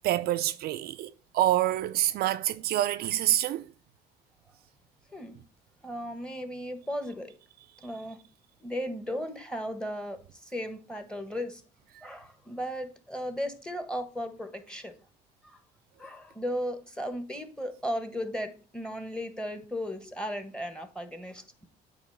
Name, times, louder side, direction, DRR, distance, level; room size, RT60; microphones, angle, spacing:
voice 1, 0.0-3.7, right 13 dB, 65° right, 0.4 m, -27 dB
voice 2, 5.8-7.3 7.8-8.2 8.6-10.2 10.5-11.6 12.0-14.9 15.4-15.6 16.0-21.4, equal, 5° left, 1.2 m, -35 dB
8.6 x 3.0 x 5.6 m
cardioid pair, 110°, 17 cm